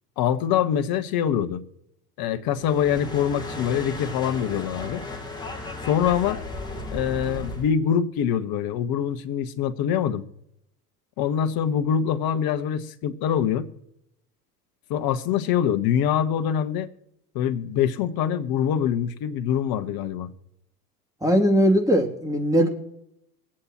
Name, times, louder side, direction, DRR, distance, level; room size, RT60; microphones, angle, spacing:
voice 1, 0.2-1.6 2.2-5.0 5.9-6.4 6.9-10.2 11.2-13.7 14.9-16.9 17.3-20.3, left 9 dB, 50° left, 10 dB, 1.2 m, -24 dB
sound 1, 2.5-7.7, left 2 dB, 10° left, 2.7 m, -35 dB
voice 2, 21.2-22.7, equal, 5° right, 2 dB, 2.6 m, -19 dB
23.0 x 8.7 x 3.0 m, 0.81 s
hypercardioid pair, 80°, 46 cm